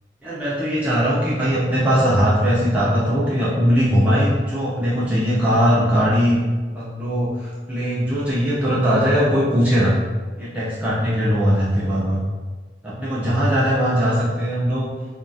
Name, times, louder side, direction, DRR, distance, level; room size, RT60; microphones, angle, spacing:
voice 1, 0.2-6.4 6.7-10.0 10.4-12.2 12.8-14.9, equal, 10° right, -9 dB, 0.4 m, -20 dB
2.2 x 2.2 x 2.5 m, 1.3 s
head